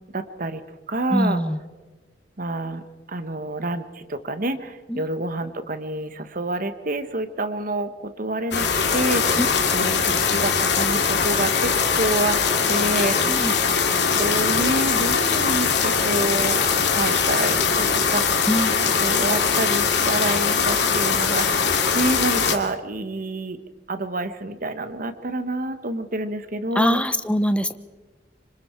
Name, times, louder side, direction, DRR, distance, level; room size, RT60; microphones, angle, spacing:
voice 1, 0.1-0.6 0.9-1.4 2.4-2.8 3.1-8.7 8.9-9.4 9.7-12.4 12.7-13.4 14.2-18.2 19.0-21.5 21.9-23.6 23.9-27.0, right 2 dB, 50° right, 11 dB, 1.2 m, -28 dB
voice 2, 1.1-1.6 4.9-5.1 9.4-9.5 13.1-13.6 18.5-18.8 26.7-27.8, equal, 5° left, 10 dB, 0.9 m, -23 dB
sound 1, 8.5-22.6, left 5 dB, 70° left, 2.4 m, -21 dB
26.0 x 25.5 x 4.5 m, 1.3 s
head